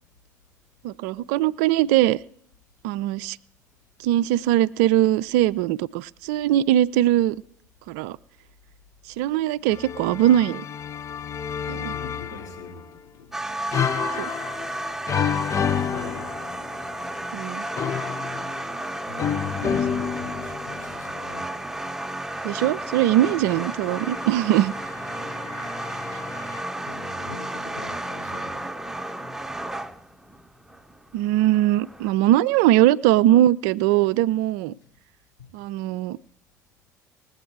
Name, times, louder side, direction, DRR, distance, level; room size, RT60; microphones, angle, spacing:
voice 1, 0.8-2.2 2.8-3.4 4.0-7.4 7.9-8.2 9.2-10.6 11.7-11.9 14.2-14.3 17.3-17.7 19.6-19.8 22.4-24.7 31.1-34.7 35.5-36.2, right 13 dB, 65° right, 18 dB, 0.4 m, -21 dB
sound 1, 9.7-12.8 13.7-16.9 17.8-21.2 23.2-26.6, left 8 dB, 30° left, 0.4 m, -30 dB
voice 2, 11.9-13.4 15.7-16.5 19.0-21.5 26.9-28.7, left 4 dB, 85° left, -3 dB, 4.3 m, -42 dB
sound 2, 13.3-32.1, right 1 dB, 5° right, 0.8 m, -33 dB
19.5 x 8.0 x 4.6 m, 0.68 s
figure-of-eight pair, 60°, 10 cm